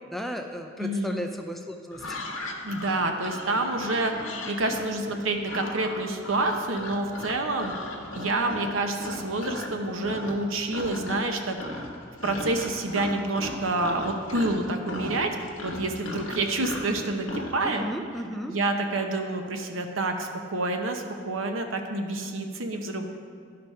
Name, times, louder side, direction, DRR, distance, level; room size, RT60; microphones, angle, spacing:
voice 1, 0.0-2.2 17.6-18.5, equal, ahead, 3 dB, 0.4 m, -35 dB
voice 2, 0.8-1.2 2.6-4.1 4.5-7.7 8.1-11.8 12.2-15.4 15.6-17.8 18.5-23.1, right 2 dB, 75° right, 4 dB, 0.9 m, -28 dB
sound 1, 1.9-9.7 10.0-10.4 10.7-11.3 11.6-17.6, left 1 dB, 90° left, 1.3 m, -36 dB
11.5 x 5.2 x 5.6 m, 2.1 s
head